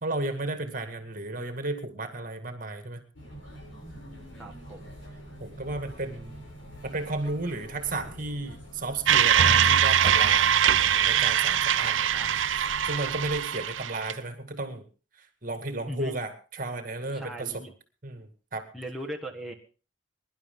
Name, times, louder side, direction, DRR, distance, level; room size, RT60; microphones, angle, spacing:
voice 1, 0.0-3.0 5.4-6.4 6.8-12.0 12.8-14.8 15.2-17.6 18.0-18.7, right 2 dB, 45° right, 7 dB, 2.0 m, -34 dB
sound 1, 3.1-13.3, equal, 80° left, 7.2 m, -45 dB
voice 2, 4.3-4.8 11.7-12.5 15.9-16.2 17.1-17.7 18.7-19.5, equal, ahead, 3 dB, 1.6 m, -39 dB
sound 2, 9.1-14.1, right 9 dB, 75° right, 0.6 m, -22 dB
22.5 x 11.5 x 3.8 m, 0.36 s
head